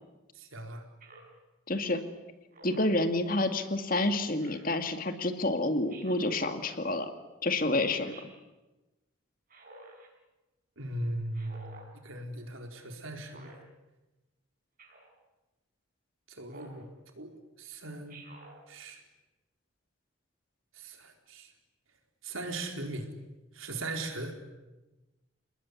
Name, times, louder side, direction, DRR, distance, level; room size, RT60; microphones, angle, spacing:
voice 1, 0.3-0.8 10.8-13.5 16.3-16.9 17.2-17.3 17.6-18.2 18.7-19.0 20.7-21.5 22.2-23.1 23.5-24.3, right 2 dB, 80° right, 3 dB, 4.6 m, -38 dB
Speech synthesizer, 1.0-1.4 2.5-3.0 4.4-4.8 5.9-6.4 7.7-8.3 9.5-10.1 11.3-11.9 13.2-13.6 14.8-15.1 16.5-16.8 18.1-18.6, right 3 dB, 40° right, 6.1 m, -51 dB
voice 2, 1.7-2.0 2.6-7.1 7.4-8.1, left 2 dB, 40° left, 7 dB, 2.3 m, -29 dB
29.5 x 20.0 x 9.9 m, 1.1 s
head